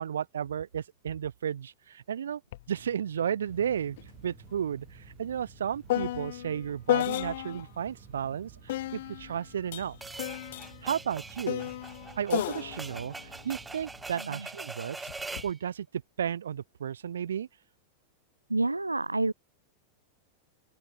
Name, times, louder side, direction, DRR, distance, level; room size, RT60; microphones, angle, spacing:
voice 1, 0.0-2.4 2.7-4.0 4.2-10.0 10.8-11.7 12.1-15.1 15.4-15.9 16.2-17.5, right 8 dB, 65° right, 5.0 m, -33 dB
sound 1, 2.5-2.7 3.0-7.8 8.7-14.2 15.1-15.5, left 15 dB, 55° left, 0.6 m, -34 dB
sound 2, 3.5-14.1, right 22 dB, 40° right, 5.6 m, -54 dB
sound 3, 10.0-15.6, right 3 dB, 10° right, 2.5 m, -42 dB
voice 2, 14.1-14.5 18.5-19.3, right 2 dB, 85° right, 2.5 m, -29 dB
open air
figure-of-eight pair, 90°, 0 cm